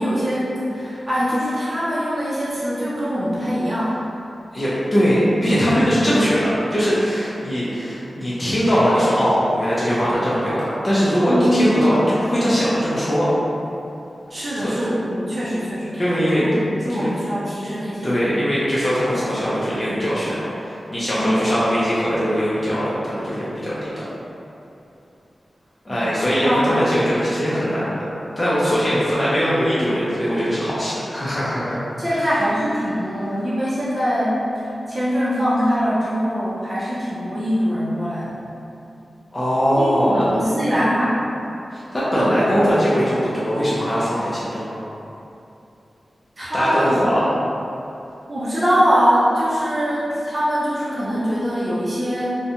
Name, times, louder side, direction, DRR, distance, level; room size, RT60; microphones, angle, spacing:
voice 1, 0.0-3.9 11.3-11.9 14.3-16.0 16.4-18.2 21.1-21.5 25.9-26.0 26.4-26.6 32.0-34.5 34.9-38.4 39.8-41.3 42.2-42.7 46.4-47.0 48.3-52.4, equal, 35° right, -10 dB, 0.6 m, -22 dB
voice 2, 4.5-13.3 14.5-14.7 15.9-16.4 17.0-17.1 18.0-24.0 25.8-28.1 28.4-31.8 32.1-32.3 39.3-40.2 41.7-44.8 46.5-47.3, equal, 30° left, -10 dB, 0.6 m, -21 dB
2.4 x 2.1 x 2.8 m, 2.8 s
cardioid pair, 50°, 0 cm